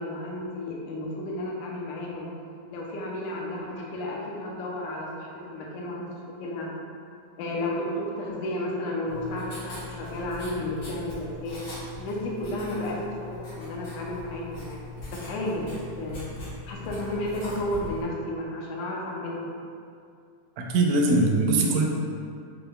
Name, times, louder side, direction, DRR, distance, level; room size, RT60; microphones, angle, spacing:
voice 1, 0.0-2.3 2.7-6.0 6.4-6.7 7.4-11.6 11.9-14.8 15.1-16.3 16.7-19.5, left 1 dB, 85° left, -2 dB, 2.1 m, -32 dB
Writing, 9.1-18.0, left 2 dB, 65° left, 1.0 m, -40 dB
voice 2, 20.6-21.9, right 2 dB, 80° right, -1 dB, 1.6 m, -21 dB
6.9 x 3.4 x 2.2 m, 2.4 s
omnidirectional pair, 3.6 m